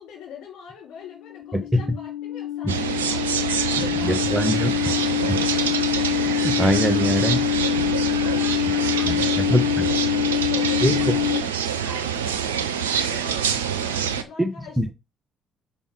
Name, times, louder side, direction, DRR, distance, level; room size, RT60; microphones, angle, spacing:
voice 1, 0.0-6.2 8.2-14.9, left 7 dB, 65° left, 4.2 m, -43 dB
sound 1, 1.2-11.4, left 12 dB, 85° left, 0.5 m, -25 dB
sound 2, 2.7-14.2, right 8 dB, 85° right, 0.6 m, -26 dB
voice 2, 4.0-4.7 5.3-5.4 6.4-7.4 9.5-9.6 10.8-10.9 14.4-14.5 14.8-14.9, equal, 10° right, 1.1 m, -21 dB
5.5 x 5.5 x 4.8 m
hypercardioid pair, 50°, 0 cm